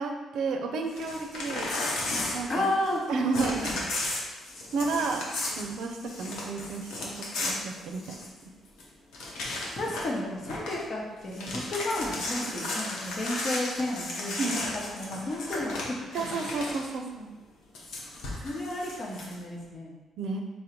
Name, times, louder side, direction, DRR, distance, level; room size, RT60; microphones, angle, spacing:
voice 1, 0.0-1.8 2.3-2.7 3.1-3.7 4.7-8.0 12.6-12.7 14.4-14.6 16.1-17.3 20.2-20.4, right 4 dB, 75° right, 4 dB, 0.4 m, -32 dB
Crumpling crinkling / Tearing, 0.9-3.0 3.3-8.4 8.8-8.9 9.1-10.2 10.5-10.8 11.2-16.9 17.7-19.3, left 2 dB, 85° left, 0.8 m, -34 dB
voice 2, 2.5-3.8 9.7-14.4 14.9-16.0 16.3-16.4 18.4-20.0, left 1 dB, 50° left, -2 dB, 0.9 m, -32 dB
3.7 x 2.1 x 4.4 m, 1.2 s
cardioid pair, 90°, 0 cm